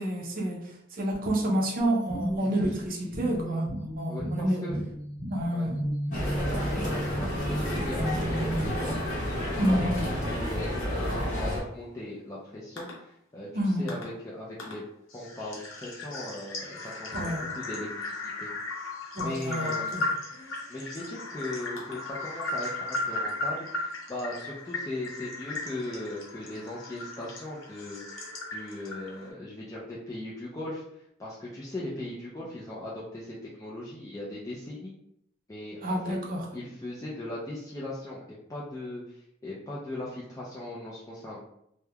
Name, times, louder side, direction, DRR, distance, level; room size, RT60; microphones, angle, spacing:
voice 1, 0.0-3.6 4.0-4.7 5.3-5.7 9.6-10.1 13.5-13.9 17.1-17.4 19.1-20.1 35.8-36.4, right 1 dB, 45° right, 0 dB, 0.5 m, -29 dB
sound 1, 1.8-8.6, right 1 dB, 25° right, 0.9 m, -33 dB
voice 2, 2.4-3.1 3.4-3.6 4.1-4.8 5.5-5.7 6.2-9.0 9.3-9.7 10.1-14.8 15.1-18.5 19.2-20.0 20.7-28.2 28.5-30.8 31.2-34.9 35.5-36.2 36.5-41.4, left 1 dB, 15° left, -7 dB, 0.4 m, -39 dB
sound 2, 6.1-11.6, equal, 40° left, 0.8 m, -30 dB
sound 3, 12.8-12.9 13.9-14.0 14.6-14.7 15.1-29.3, left 2 dB, 80° left, 0.7 m, -36 dB
3.1 x 2.1 x 2.3 m, 0.76 s
head